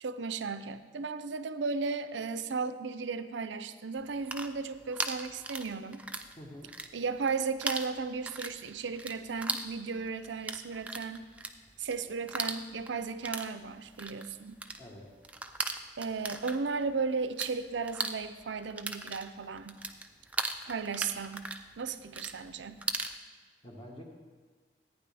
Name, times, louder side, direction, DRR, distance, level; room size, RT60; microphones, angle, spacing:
voice 1, 0.0-6.1 6.9-11.3 11.8-14.6 16.0-19.8 20.7-22.8, right 4 dB, 80° right, 11 dB, 0.5 m, -35 dB
sound 1, 4.1-6.3 6.6-7.3 7.6-17.5 17.8-23.2, right 2 dB, 5° right, 0.3 m, -38 dB
voice 2, 6.4-6.7 14.8-15.1 23.6-24.0, left 1 dB, 30° left, -1 dB, 1.5 m, -47 dB
14.5 x 9.3 x 3.4 m, 1.5 s
head